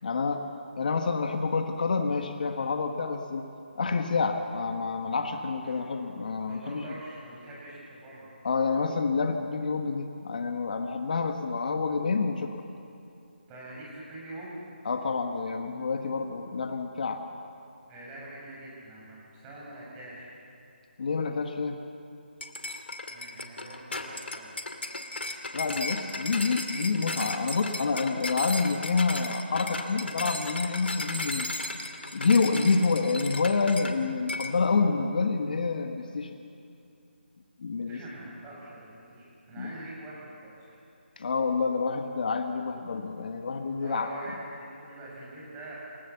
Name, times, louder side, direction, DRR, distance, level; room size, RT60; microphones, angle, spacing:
voice 1, 0.0-0.5 0.8-3.4 3.8-6.8 8.4-12.6 14.8-17.2 21.0-21.8 25.5-31.5 32.1-36.3 37.6-38.0 39.6-39.7 41.2-44.1, left 4 dB, 50° left, 5 dB, 1.5 m, -28 dB
voice 2, 6.5-8.3 13.5-14.6 17.9-20.3 23.1-24.6 37.9-40.6 43.8-45.7, right 1 dB, 15° right, -5 dB, 7.0 m, -44 dB
sound 1, 22.4-34.0 34.3-34.6, left 2 dB, 75° left, 2.4 m, -35 dB
28.0 x 17.5 x 7.2 m, 2.6 s
figure-of-eight pair, 160°, 6 cm